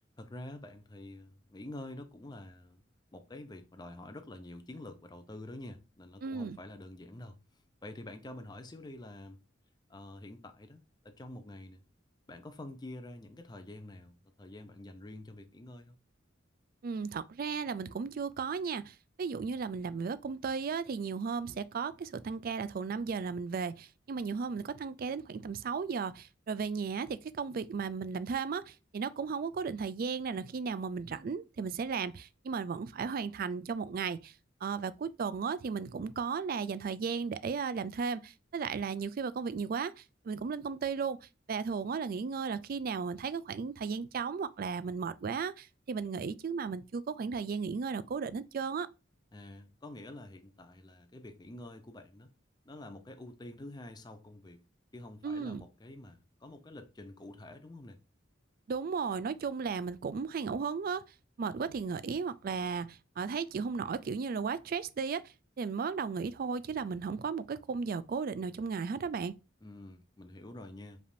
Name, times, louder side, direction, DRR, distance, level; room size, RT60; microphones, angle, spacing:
voice 1, 0.2-2.8 3.1-7.4 7.8-9.4 9.9-11.8 12.3-16.0 49.3-52.3 52.7-54.6 54.9-58.0 69.6-71.0, left 1 dB, 20° left, 0.5 m, -47 dB
voice 2, 6.2-6.6 16.8-34.3 34.6-41.2 41.5-48.9 55.2-55.7 58.7-61.0 61.4-69.3, right 5 dB, 50° right, 0.3 m, -35 dB
5.0 x 3.4 x 2.5 m
head